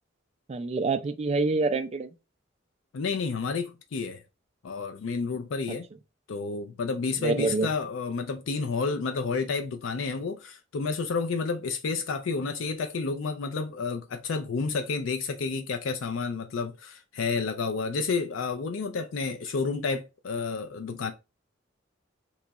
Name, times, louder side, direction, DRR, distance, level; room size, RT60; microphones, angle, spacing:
voice 1, 0.5-2.1 7.2-7.7, right 3 dB, 35° right, 0.3 m, -26 dB
voice 2, 2.9-4.2 4.6-5.9 6.3-21.1, left 4 dB, 85° left, 0.4 m, -30 dB
2.9 x 2.3 x 3.9 m
head